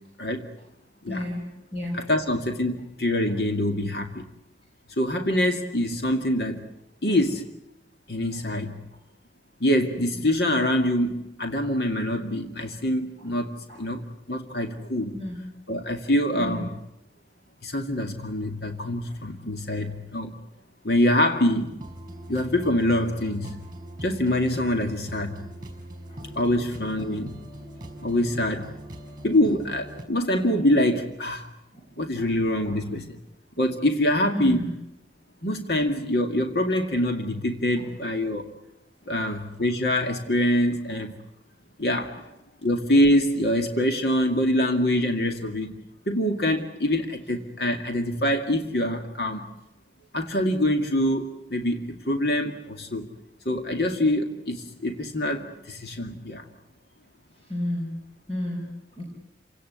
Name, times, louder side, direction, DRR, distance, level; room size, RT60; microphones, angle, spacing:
voice 1, 1.1-1.4 1.7-2.0 8.3-8.4 13.7-13.8 15.1-15.5 16.3-16.6 19.1-19.2 26.1-26.2 29.2-29.3 31.7-31.9 32.2-32.3 32.6-32.8 34.3-34.7 57.4-58.0 58.3-59.0, left 1 dB, 30° left, 0 dB, 5.0 m, -32 dB
voice 2, 1.9-4.2 5.0-6.6 7.0-7.5 8.1-8.8 9.6-14.0 14.3-15.1 15.7-16.7 17.6-20.3 20.8-21.8 22.3-23.6 24.0-25.4 26.4-27.3 28.0-28.7 29.2-31.5 32.0-33.2 33.6-34.6 35.4-38.5 39.1-41.1 41.8-42.3 42.6-45.7 46.1-49.4 50.1-51.3 51.5-53.1 53.5-56.4, left 1 dB, 60° left, 5 dB, 2.2 m, -25 dB
sound 1, 21.7-30.0, right 1 dB, 25° right, 4.8 m, -41 dB
29.5 x 17.5 x 9.5 m, 0.90 s
head